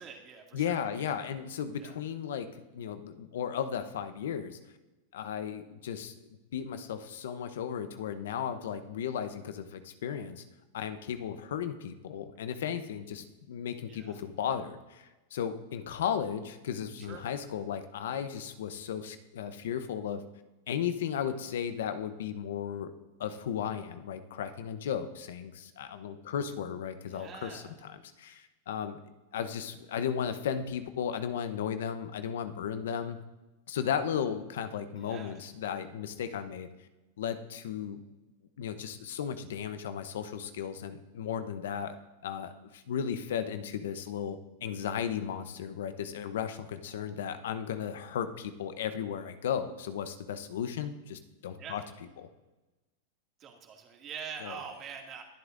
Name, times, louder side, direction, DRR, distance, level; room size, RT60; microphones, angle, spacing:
voice 1, 0.0-0.9 1.8-1.9 13.9-14.2 17.0-17.2 27.1-27.7 35.0-35.3 51.6-51.8 53.4-55.2, right 6 dB, 35° right, 1 dB, 2.2 m, -44 dB
voice 2, 0.5-2.5 2.7-4.6 5.1-6.1 6.5-10.4 10.7-20.2 20.7-22.9 23.2-29.0 29.3-33.2 33.7-36.7 37.2-38.0 38.6-42.0 42.2-51.8 52.2-52.3 54.4-54.6, left 8 dB, 80° left, 10 dB, 0.8 m, -35 dB
21.5 x 8.1 x 2.6 m, 1.1 s
hypercardioid pair, 120°, 0 cm